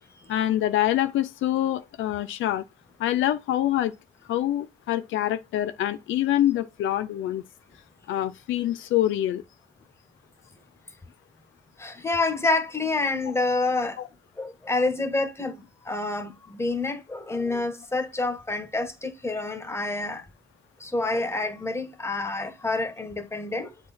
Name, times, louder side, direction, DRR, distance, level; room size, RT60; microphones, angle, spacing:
voice 1, 0.3-2.6 3.0-3.9 4.3-7.4 8.1-9.4 13.6-13.7, left 12 dB, 80° left, 0.6 m, -25 dB
voice 2, 11.8-14.0 14.4-20.2 20.8-23.7, left 3 dB, 15° left, 1.4 m, -28 dB
7.7 x 4.2 x 4.3 m
cardioid pair, 90°, 20 cm